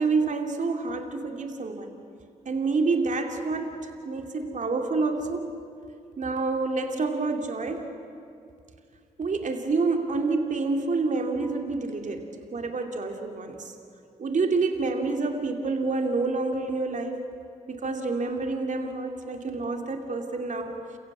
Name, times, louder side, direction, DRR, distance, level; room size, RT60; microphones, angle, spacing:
voice 1, 0.0-2.0 2.4-5.6 6.2-7.9 9.2-12.2 12.5-13.7 14.2-17.2 17.7-21.0, right 3 dB, 50° right, 4 dB, 2.8 m, -28 dB
29.0 x 15.0 x 8.7 m, 2.4 s
hypercardioid pair, 45°, 16 cm